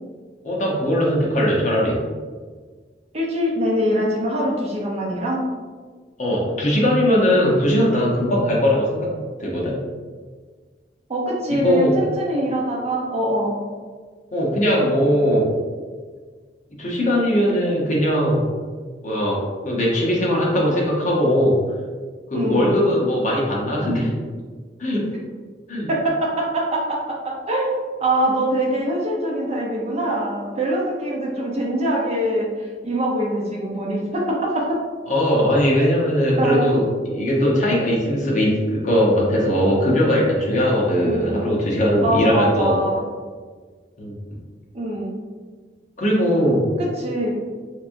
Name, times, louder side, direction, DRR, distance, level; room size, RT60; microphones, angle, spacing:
voice 1, 0.4-2.0 6.2-9.1 9.4-9.8 11.5-12.0 14.3-15.5 16.8-18.4 19.0-21.6 22.3-24.1 24.8-25.1 25.7-25.9 35.1-42.8 44.0-44.1 46.0-46.7, equal, 45° left, -4 dB, 0.9 m, -20 dB
voice 2, 3.1-5.4 11.1-13.5 22.3-22.8 25.9-34.8 35.8-35.9 36.4-36.7 41.0-41.4 42.0-43.0 44.7-45.2 46.8-47.4, right 1 dB, 35° right, -2 dB, 0.7 m, -23 dB
3.3 x 3.3 x 2.6 m, 1.5 s
head